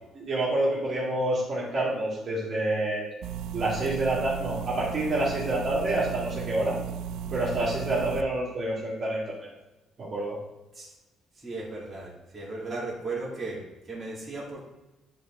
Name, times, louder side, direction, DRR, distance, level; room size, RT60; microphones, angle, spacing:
voice 1, 0.2-3.0 3.5-6.8 7.3-9.5 10.0-10.4, right 1 dB, 40° right, -6 dB, 2.3 m, -28 dB
sound 1, 3.2-8.2, right 7 dB, 85° right, 0.4 m, -35 dB
voice 2, 11.3-14.6, right 3 dB, 15° right, -7 dB, 2.5 m, -36 dB
9.8 x 3.8 x 3.7 m, 1.0 s
cardioid pair, 125°, 0 cm